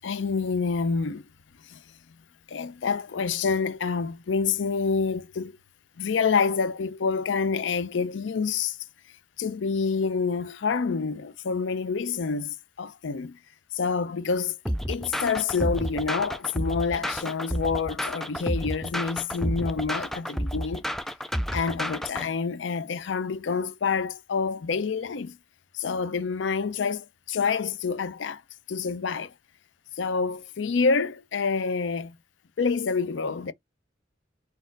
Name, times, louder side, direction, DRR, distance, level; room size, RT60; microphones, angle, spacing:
voice 1, 0.0-1.3 1.6-1.8 2.5-5.6 6.0-8.8 9.4-13.4 13.7-14.6 14.9-20.8 21.5-25.4 25.7-28.4 28.7-29.3 30.0-32.2 32.6-33.5, left 5 dB, 90° left, 0.5 m, -27 dB
sound 1, 14.7-22.3, equal, ahead, 0.3 m, -30 dB
4.2 x 2.5 x 3.8 m
head